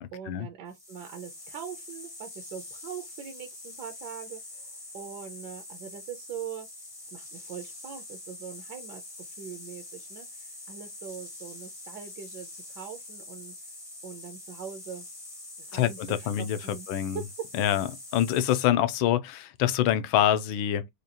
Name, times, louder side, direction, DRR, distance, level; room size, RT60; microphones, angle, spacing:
voice 1, 0.0-4.7 4.9-6.7 7.1-13.5 14.0-15.0 15.6-16.9 17.1-17.2, right 8 dB, 65° right, 1.2 m, -42 dB
sound 1, 0.7-18.6, left 2 dB, 35° left, 0.5 m, -45 dB
voice 2, 15.7-16.6 16.9-17.2 17.6-17.9 18.1-20.9, left 11 dB, 80° left, 1.3 m, -25 dB
5.1 x 2.4 x 2.8 m
omnidirectional pair, 2.3 m